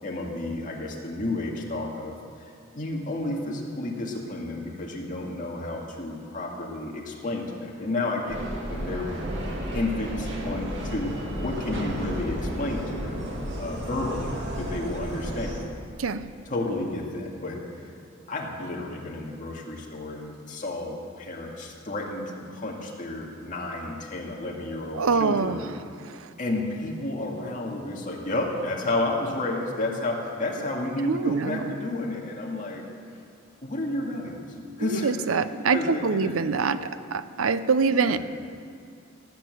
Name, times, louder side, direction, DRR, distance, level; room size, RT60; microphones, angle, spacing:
voice 1, 0.0-2.2 2.7-9.1 9.7-13.2 13.6-15.6 16.5-17.9 18.3-25.6 26.4-32.8 33.6-34.4 34.8-36.9 37.9-38.2, left 2 dB, 40° left, -1 dB, 2.2 m, -31 dB
sound 1, 8.3-15.7, equal, 60° right, 2.2 m, -33 dB
voice 2, 24.9-25.6 26.0-26.2 31.1-31.7 34.9-38.2, right 5 dB, 85° right, 13 dB, 0.6 m, -25 dB
17.5 x 8.1 x 7.9 m, 2.3 s
head